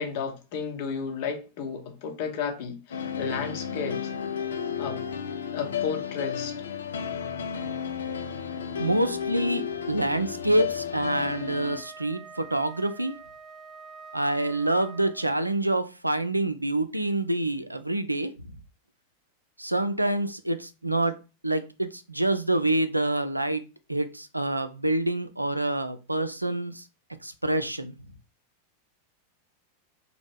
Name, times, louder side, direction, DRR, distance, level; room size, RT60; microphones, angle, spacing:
voice 1, 0.0-4.1 4.8-5.0 5.5-6.5, left 6 dB, 50° left, 0.8 m, -33 dB
sound 1, 2.9-11.8, left 7 dB, 65° left, 0.4 m, -33 dB
voice 2, 8.8-13.1 14.1-18.3 19.6-21.2 21.4-23.6 23.9-26.8 27.2-27.9, right 1 dB, 85° right, 0.3 m, -27 dB
Wind instrument woodwind instrument, 10.9-15.5, right 5 dB, ahead, 0.5 m, -46 dB
2.8 x 2.0 x 3.4 m
figure-of-eight pair, 90°, 0 cm